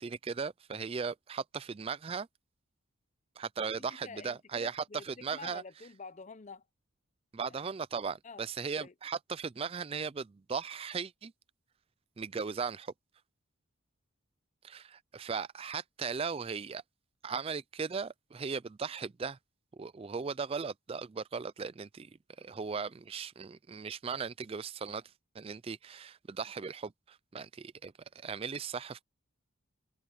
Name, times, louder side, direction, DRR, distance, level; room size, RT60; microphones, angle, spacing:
voice 1, 0.0-2.3 3.4-5.6 7.3-11.3 12.2-12.9 14.6-16.8 17.2-19.4 19.7-22.1 22.4-25.0 25.3-29.0, right 5 dB, 25° right, 0.3 m, -37 dB
voice 2, 3.7-6.6 8.2-8.5 8.7-8.9, left 4 dB, 35° left, 0.5 m, -48 dB
head